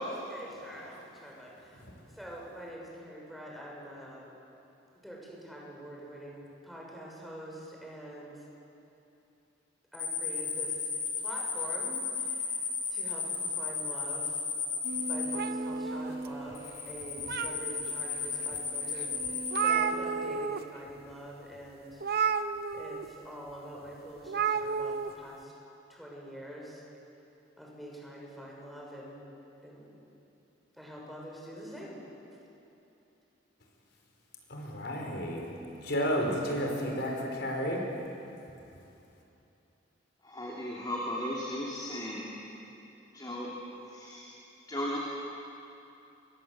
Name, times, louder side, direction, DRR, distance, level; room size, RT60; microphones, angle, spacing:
voice 1, 0.0-1.9 2.1-4.3 5.0-8.4 9.9-14.4 15.0-22.0 22.7-25.5 25.9-26.8 27.6-29.2 29.6-29.9 30.8-32.0, equal, ahead, -3 dB, 6.4 m, -45 dB
sound 1, 9.9-15.4 16.5-19.7, left 6 dB, 35° left, 6.1 m, -34 dB
sound 2, 14.8-20.3, right 1 dB, 80° right, 3.5 m, -41 dB
sound 3, 15.3-16.5 17.0-17.9 18.5-18.6 19.0-19.1 19.2-20.6 20.9-21.1 22.0-23.0 24.2-25.1, right 6 dB, 55° right, 1.0 m, -31 dB
voice 2, 34.5-35.5 35.8-37.8, equal, 65° left, 1 dB, 4.8 m, -31 dB
voice 3, 40.2-42.3 43.1-43.5 43.9-44.3 44.7-45.0, left 1 dB, 20° left, -4 dB, 3.4 m, -36 dB
29.5 x 24.5 x 7.9 m, 2.8 s
head